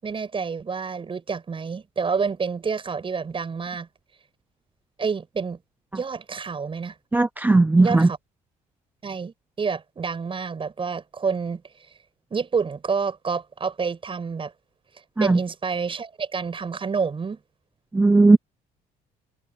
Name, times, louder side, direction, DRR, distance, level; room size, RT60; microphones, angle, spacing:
voice 1, 0.0-3.9 5.0-5.6 5.9-7.0 7.8-8.2 9.0-11.6 12.3-14.5 15.2-17.4, right 5 dB, 30° right, 7.7 m, -28 dB
voice 2, 7.1-8.1 15.2-15.4 17.9-18.4, right 3 dB, 10° right, 0.5 m, -16 dB
cardioid pair, 110°, 17 cm